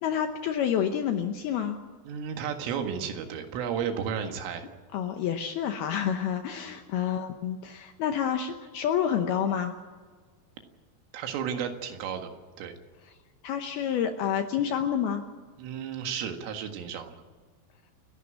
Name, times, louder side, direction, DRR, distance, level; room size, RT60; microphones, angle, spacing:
voice 1, 0.0-1.8 4.9-9.7 13.4-15.2, left 8 dB, 75° left, 6 dB, 2.3 m, -28 dB
voice 2, 2.1-4.7 6.6-6.8 11.1-12.3 12.6-12.7 15.6-17.2, right 7 dB, 85° right, 5 dB, 4.3 m, -33 dB
29.0 x 11.5 x 8.7 m, 1.5 s
omnidirectional pair, 5.6 m